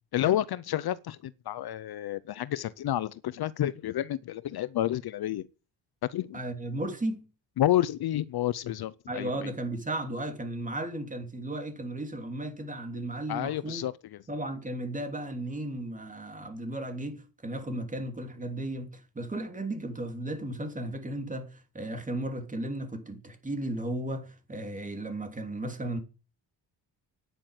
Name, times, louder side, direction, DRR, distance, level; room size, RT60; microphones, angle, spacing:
voice 1, 0.1-5.5 6.1-6.4 7.6-9.5 13.3-13.9, left 12 dB, 60° left, 0.7 m, -30 dB
voice 2, 6.3-7.3 9.1-13.8 14.3-26.0, right 1 dB, 20° right, 3.2 m, -35 dB
10.0 x 9.2 x 9.2 m
cardioid pair, 140°, 42 cm